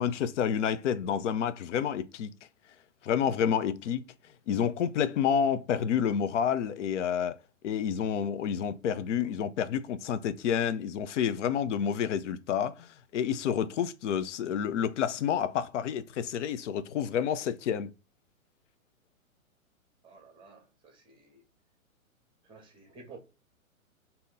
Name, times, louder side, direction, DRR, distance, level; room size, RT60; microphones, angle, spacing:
voice 1, 0.0-2.3 3.0-4.0 4.5-7.4 7.6-17.9, left 8 dB, 60° left, 0.6 m, -29 dB
voice 2, 20.0-21.4 22.4-23.2, right 4 dB, 10° right, 0.9 m, -52 dB
2.8 x 2.7 x 3.8 m
hypercardioid pair, 125°, 42 cm